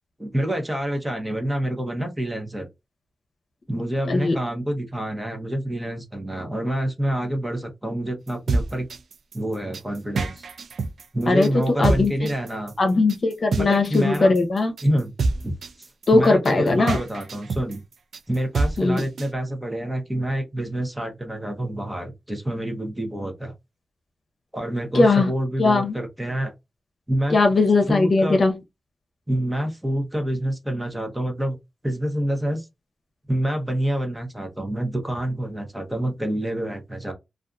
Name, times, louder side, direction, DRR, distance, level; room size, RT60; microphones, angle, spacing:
voice 1, 0.2-2.7 3.7-8.9 9.3-10.4 11.1-12.7 13.6-14.3 14.8-15.1 15.4-15.5 15.8-17.8 18.3-23.5 24.5-26.5 27.1-27.4 27.9-28.4 29.3-31.6 31.8-32.7 33.3-37.1, right 1 dB, 15° right, 0.8 m, -27 dB
sound 1, 8.3-19.3, right 3 dB, 85° right, 0.3 m, -27 dB
voice 2, 11.3-12.3 12.8-14.7 16.1-17.0 18.8-19.0 24.9-25.3 25.6-26.0 27.3-28.5, left 3 dB, 55° left, 0.7 m, -19 dB
2.5 x 2.4 x 2.3 m
wide cardioid pair, 90°, 0 cm